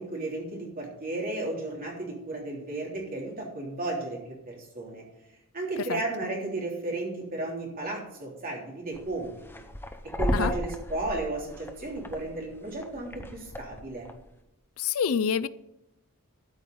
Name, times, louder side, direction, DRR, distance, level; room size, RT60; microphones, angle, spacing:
voice 1, 0.0-5.0 5.5-9.3 10.0-14.1, right 2 dB, 40° right, 3.4 m, -34 dB
sound 1, 8.9-14.3, left 1 dB, 10° left, 0.8 m, -35 dB
voice 2, 14.8-15.5, left 7 dB, 65° left, 0.5 m, -27 dB
13.0 x 5.4 x 8.5 m
head